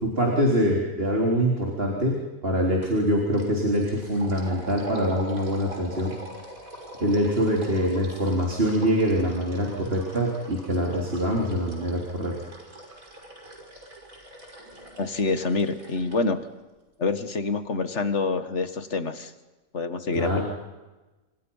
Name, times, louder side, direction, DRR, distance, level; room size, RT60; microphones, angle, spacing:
voice 1, 0.0-2.1 2.4-6.1 7.0-12.3 20.1-20.4, equal, 45° right, -1 dB, 4.1 m, -24 dB
sound 1, 2.8-3.0 3.3-16.2, right 1 dB, 85° right, 6.5 m, -43 dB
voice 2, 15.0-16.4 17.0-19.3 19.7-20.4, left 4 dB, 55° left, 9 dB, 2.0 m, -26 dB
29.5 x 26.5 x 5.7 m, 1.1 s
omnidirectional pair, 1.4 m